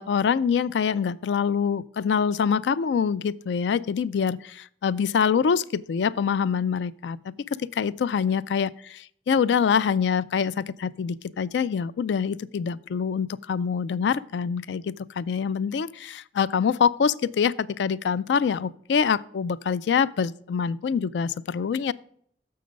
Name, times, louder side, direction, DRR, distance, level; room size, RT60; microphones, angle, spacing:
voice 1, 0.0-7.3 7.6-21.9, left 6 dB, 85° left, 0.4 m, -25 dB
6.8 x 6.4 x 5.1 m
head